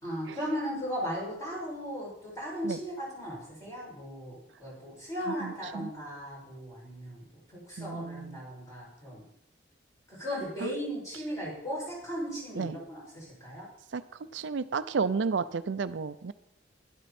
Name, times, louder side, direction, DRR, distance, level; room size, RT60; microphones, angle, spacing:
voice 1, 0.0-7.3 7.5-9.2 10.1-13.7, equal, 15° left, -6 dB, 6.2 m, -37 dB
voice 2, 5.3-5.9 7.8-8.4 10.6-10.7 12.5-12.8 13.9-16.3, right 5 dB, 75° right, 13 dB, 0.5 m, -32 dB
12.5 x 11.5 x 4.3 m, 0.77 s
head